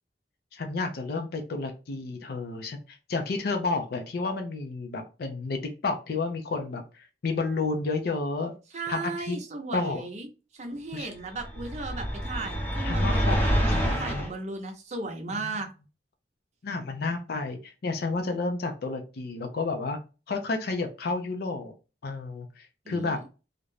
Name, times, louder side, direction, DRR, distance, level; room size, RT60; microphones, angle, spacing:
voice 1, 0.5-8.5 8.9-9.4 9.7-10.0 10.9-11.1 12.8-13.4 13.7-14.3 15.3-15.5 16.6-20.0 20.3-21.7 22.0-23.2, left 3 dB, 60° left, 4 dB, 0.5 m, -31 dB
voice 2, 8.7-15.7 22.8-23.2, right 3 dB, 40° right, 3 dB, 0.6 m, -36 dB
sound 1, 11.4-14.3, equal, 10° left, 0.6 m, -27 dB
2.5 x 2.1 x 3.1 m, 0.31 s
head